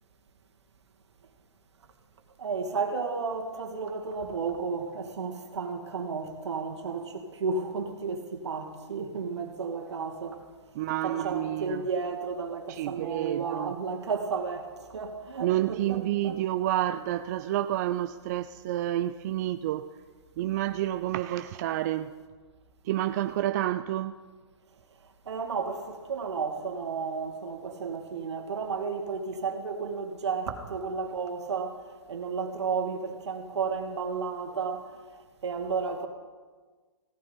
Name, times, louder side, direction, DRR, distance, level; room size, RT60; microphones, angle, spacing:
voice 1, 2.4-10.4 11.0-16.4 25.3-31.8 32.1-35.0 35.4-36.1, right 5 dB, 70° right, 3 dB, 2.1 m, -33 dB
voice 2, 10.7-11.9 12.7-13.7 15.4-19.9 20.4-22.1 22.8-24.2, right 13 dB, 35° right, 10 dB, 0.4 m, -29 dB
17.0 x 14.0 x 4.0 m, 1.4 s
hypercardioid pair, 130°, 15 cm